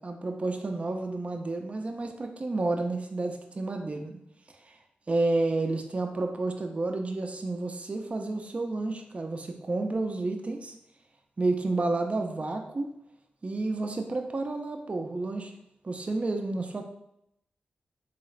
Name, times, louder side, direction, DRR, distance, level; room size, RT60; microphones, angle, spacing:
voice 1, 0.0-4.2 5.1-10.7 11.4-12.9 13.4-15.5 15.8-16.8, right 2 dB, 40° right, 3 dB, 0.5 m, -30 dB
3.6 x 2.4 x 3.2 m, 0.77 s
cardioid pair, 55°, 3 cm